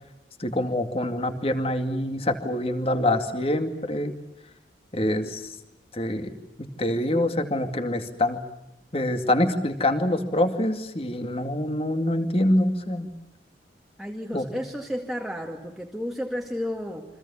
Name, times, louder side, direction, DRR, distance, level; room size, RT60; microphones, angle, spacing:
voice 1, 0.4-4.1 4.9-5.6 5.9-6.3 6.6-8.4 8.9-13.1 14.3-14.5, left 1 dB, 30° left, 8 dB, 2.3 m, -25 dB
voice 2, 14.0-17.1, equal, ahead, 0 dB, 2.1 m, -32 dB
29.5 x 25.0 x 7.2 m, 0.91 s
head